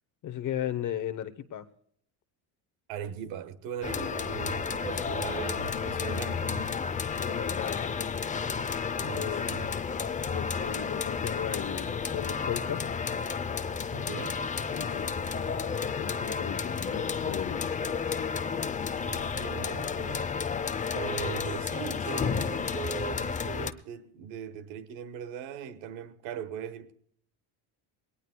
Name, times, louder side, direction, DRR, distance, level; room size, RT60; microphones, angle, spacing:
voice 1, 0.2-1.7 7.1-8.1 9.1-9.9 10.2-12.8 14.1-14.2 14.7-17.8, left 10 dB, 40° left, 0.9 m, -37 dB
voice 2, 2.9-6.7 9.0-9.7 13.9-14.4 19.0-20.3 20.9-26.9, right 8 dB, 80° right, 1.5 m, -39 dB
sound 1, 3.8-23.7, left 6 dB, 15° left, 0.6 m, -32 dB
21.5 x 18.5 x 2.3 m
cardioid pair, 125°, 46 cm